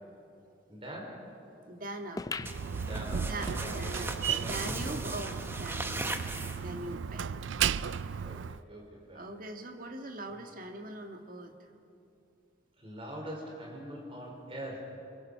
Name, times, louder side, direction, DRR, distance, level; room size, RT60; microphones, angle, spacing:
voice 1, 0.7-1.2 2.8-3.3 3.6-5.0 8.2-9.2 12.8-14.8, equal, 30° right, -2 dB, 4.7 m, -43 dB
voice 2, 1.7-2.3 3.2-6.3 6.6-7.4 9.1-11.6, right 2 dB, 45° right, 4 dB, 1.7 m, -41 dB
sound 1, 2.2-5.1 5.6-5.7 5.9-6.0 6.7-6.8, left 3 dB, 20° left, 0.4 m, -43 dB
Slam, 2.4-8.6, right 7 dB, 80° right, 0.4 m, -35 dB
sound 2, 2.5-6.9, right 2 dB, 10° right, 1.0 m, -38 dB
27.5 x 22.0 x 5.7 m, 2.8 s
head